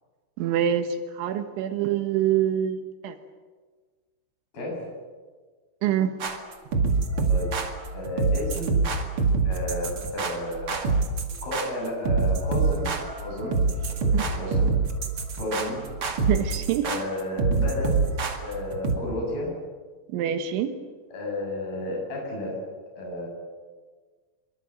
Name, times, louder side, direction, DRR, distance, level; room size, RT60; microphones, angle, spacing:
voice 1, 0.4-3.2 5.8-6.1 14.1-14.2 16.3-16.9 20.1-20.7, right 10 dB, 75° right, 8 dB, 3.5 m, -25 dB
voice 2, 4.5-4.8 7.3-7.5 7.9-8.8 9.4-10.9 11.4-12.9 13.2-14.8 15.4-15.8 16.8-18.0 18.4-19.5 21.1-22.6 23.0-23.3, left 1 dB, 50° left, -1 dB, 9.4 m, -32 dB
sound 1, 6.2-19.0, right 4 dB, 45° right, 1.9 m, -25 dB
25.5 x 23.0 x 7.7 m, 1.4 s
omnidirectional pair, 5.6 m